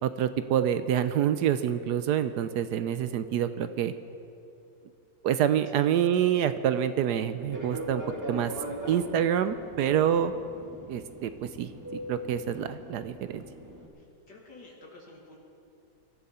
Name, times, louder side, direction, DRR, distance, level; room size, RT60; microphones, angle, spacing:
voice 1, 0.0-3.9 5.2-8.0 8.3-8.5 8.9-10.3 10.9-11.7 12.1-13.4, right 9 dB, 70° right, 11 dB, 1.1 m, -27 dB
Fixed-wing aircraft airplane, 7.4-13.9, equal, 10° right, 1.8 m, -40 dB
voice 2, 13.9-15.4, left 2 dB, 65° left, -3 dB, 2.6 m, -51 dB
23.0 x 13.5 x 4.2 m, 2.8 s
omnidirectional pair, 2.0 m